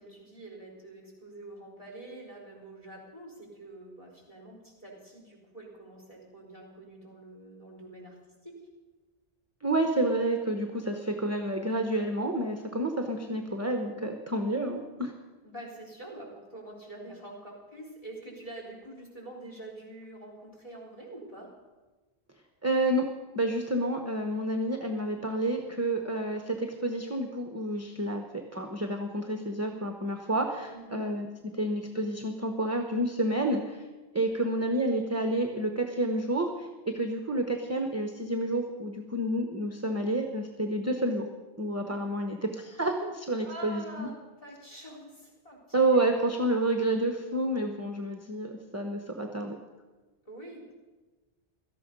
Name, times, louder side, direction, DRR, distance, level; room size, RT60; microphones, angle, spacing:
voice 1, 0.0-8.7 13.2-13.4 15.4-21.5 30.7-31.2 34.4-34.5 43.4-46.0 50.2-50.7, right 1 dB, 30° left, 0 dB, 4.1 m, -46 dB
voice 2, 9.6-15.1 22.6-23.1 23.3-31.3 31.6-33.9 34.1-41.3 41.6-44.1 45.7-49.6, right 1 dB, 15° right, 4 dB, 0.9 m, -29 dB
17.5 x 13.0 x 5.4 m, 1.2 s
omnidirectional pair, 1.1 m